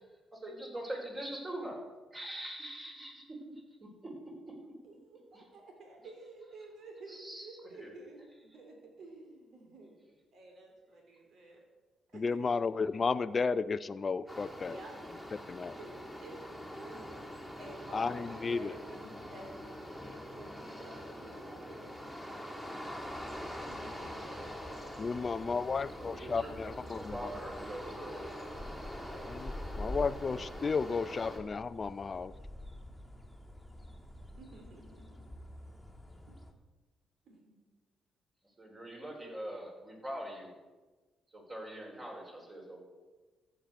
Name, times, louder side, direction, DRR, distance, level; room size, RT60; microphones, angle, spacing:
voice 1, 0.3-1.8 2.1-3.3 3.8-4.1 5.3-5.5 7.1-7.9 25.8-28.5 29.6-29.7 31.4-31.5 38.4-40.5 41.3-42.8, right 1 dB, 30° right, 0 dB, 4.7 m, -43 dB
voice 2, 4.8-9.9 10.3-11.6 12.1-12.4 14.6-15.0 15.8-22.0 22.4-22.7 23.6-24.3 26.1-26.2 33.9-34.0 34.4-35.2 37.2-37.5, right 2 dB, 65° right, 1 dB, 3.3 m, -52 dB
voice 3, 12.1-14.8 15.5-15.8 17.9-18.7 25.0-27.3 29.3-32.3, left 4 dB, 35° left, 13 dB, 0.4 m, -33 dB
sound 1, 14.3-31.4, equal, 10° right, 3.1 m, -44 dB
sound 2, 23.0-36.5, left 1 dB, 5° left, 2.0 m, -48 dB
14.0 x 8.8 x 6.4 m, 1.3 s
cardioid pair, 90°, 0 cm